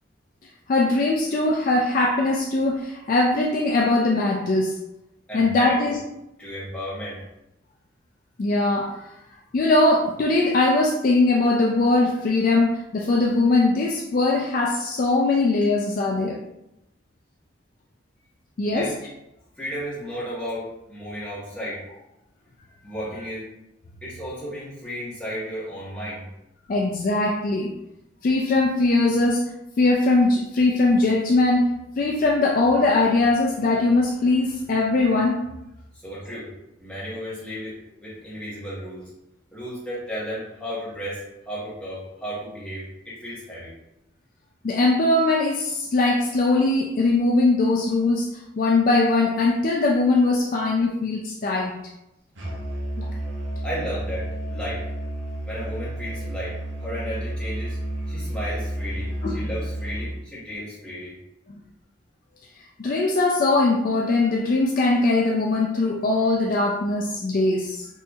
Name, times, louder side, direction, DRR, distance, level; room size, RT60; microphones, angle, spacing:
voice 1, 0.7-4.8 5.3-6.0 8.4-9.1 9.5-16.4 18.6-18.9 26.7-27.7 28.2-29.4 29.8-31.7 32.0-35.4 44.6-51.8 53.0-53.1 59.2-59.5 62.8-67.9, left 2 dB, 45° left, -1 dB, 0.3 m, -21 dB
voice 2, 5.3-6.0 6.4-7.2 18.7-18.9 19.6-22.0 22.8-23.5 24.0-26.2 35.9-36.5 36.8-39.0 39.5-43.7 53.6-54.8 55.4-57.8 58.1-61.2, equal, 5° left, -9 dB, 1.1 m, -34 dB
Musical instrument, 52.4-60.2, right 1 dB, 75° right, 0.8 m, -31 dB
4.2 x 2.7 x 2.3 m, 0.88 s
head